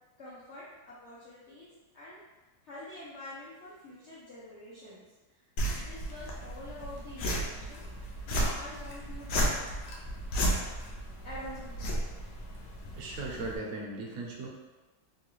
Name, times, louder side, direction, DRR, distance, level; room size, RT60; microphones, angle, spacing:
voice 1, 0.2-2.2 2.6-9.6 11.2-12.3, left 1 dB, 85° left, -8 dB, 0.6 m, -47 dB
sound 1, 5.6-13.6, equal, 70° left, 0.9 m, -34 dB
voice 2, 13.0-14.5, right 3 dB, 65° right, -1 dB, 0.9 m, -37 dB
3.5 x 2.3 x 3.0 m, 1.2 s
omnidirectional pair, 2.0 m